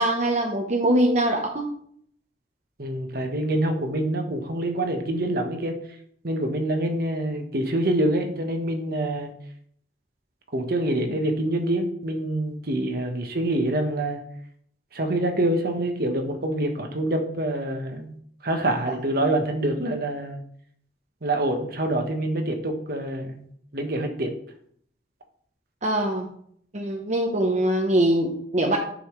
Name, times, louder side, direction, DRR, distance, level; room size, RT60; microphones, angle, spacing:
voice 1, 0.0-1.6 25.8-26.3 26.7-28.8, right 1 dB, 40° right, 1 dB, 0.9 m, -22 dB
voice 2, 2.8-5.8 6.2-9.3 10.5-14.2 14.9-18.1 18.4-20.4 21.2-23.4 23.7-24.3, right 1 dB, 60° right, 4 dB, 1.2 m, -26 dB
10.5 x 5.6 x 3.2 m, 0.65 s
head